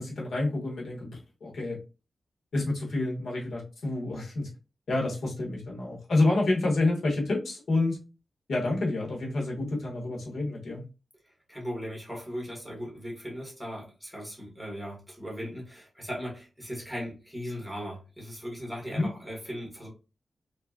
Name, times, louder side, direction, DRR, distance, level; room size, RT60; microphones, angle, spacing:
voice 1, 0.0-1.8 2.5-4.5 4.9-8.0 8.5-10.8 18.9-19.1, left 2 dB, 80° left, -3 dB, 1.4 m, -28 dB
voice 2, 11.5-19.9, equal, ahead, -3 dB, 1.7 m, -38 dB
3.4 x 3.1 x 2.4 m, 0.30 s
wide cardioid pair, 110°, 0 cm